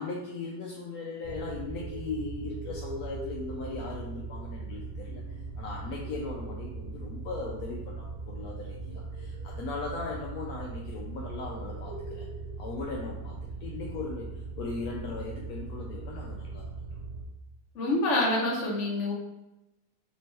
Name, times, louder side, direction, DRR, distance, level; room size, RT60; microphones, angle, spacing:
voice 1, 0.0-5.2 5.6-12.3 12.6-16.9, left 3 dB, 75° left, -2 dB, 1.0 m, -38 dB
sound 1, 1.2-17.2, right 3 dB, 60° right, 0.7 m, -39 dB
voice 2, 17.7-19.1, left 2 dB, 55° left, -2 dB, 1.1 m, -26 dB
3.5 x 2.9 x 3.1 m, 0.94 s
omnidirectional pair, 1.7 m